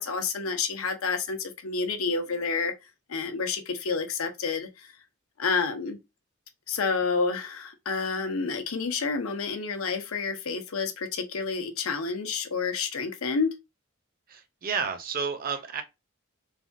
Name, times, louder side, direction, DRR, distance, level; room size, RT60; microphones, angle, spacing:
voice 1, 0.0-2.7 3.1-4.9 5.4-6.0 6.7-13.5, left 4 dB, 85° left, 0.6 m, -29 dB
voice 2, 14.3-15.8, right 5 dB, 45° right, 0.6 m, -31 dB
3.3 x 2.2 x 2.5 m
head